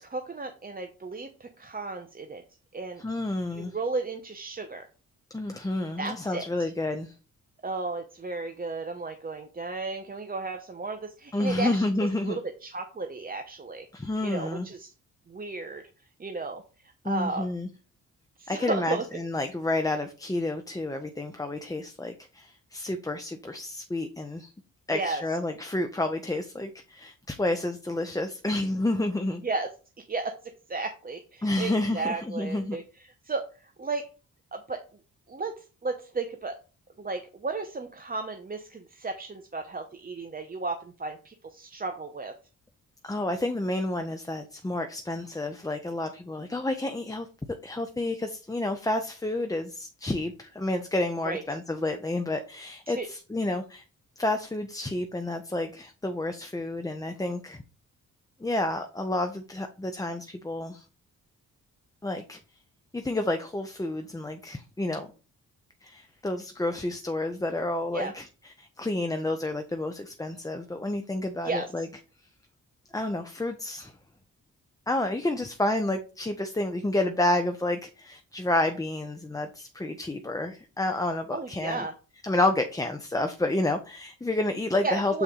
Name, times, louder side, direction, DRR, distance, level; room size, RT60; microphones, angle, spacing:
voice 1, 0.0-2.4 2.7-3.0 3.5-4.8 6.0-6.4 7.6-13.9 14.2-14.9 15.3-15.8 16.2-16.6 17.0-17.5 18.4-19.1 24.9-25.2 29.4-29.7 30.1-33.5 33.8-34.1 34.5-34.8 35.3-36.6 37.0-42.3 51.2-51.4 52.9-53.1 67.9-68.1 71.4-71.9 81.3-81.9 84.8-85.2, right 3 dB, 25° right, 6 dB, 0.8 m, -34 dB
voice 2, 3.0-3.8 5.3-7.1 11.3-12.4 13.9-14.7 17.0-17.7 18.5-24.5 24.9-29.4 31.4-32.8 43.0-47.3 47.6-53.8 54.2-57.6 58.4-60.8 62.0-62.4 62.9-65.1 65.8-68.3 68.6-71.9 72.9-73.9 74.9-81.9 82.2-85.2, left 2 dB, 10° left, 6 dB, 0.7 m, -30 dB
7.1 x 3.9 x 3.7 m, 0.35 s
cardioid pair, 75°, 33 cm